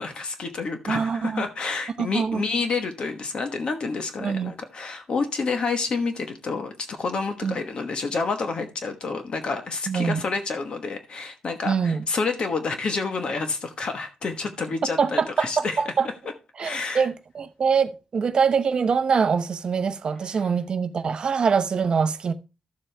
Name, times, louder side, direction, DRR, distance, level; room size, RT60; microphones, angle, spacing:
voice 1, 0.0-15.8 16.6-17.1, left 4 dB, 40° left, 1.2 m, -29 dB
voice 2, 0.9-1.4 2.0-2.4 4.2-4.5 7.4-7.6 9.9-10.2 11.7-12.0 15.0-16.1 16.6-22.3, right 6 dB, 40° right, 0.7 m, -24 dB
12.5 x 7.5 x 3.3 m
wide cardioid pair, 175°, 2 cm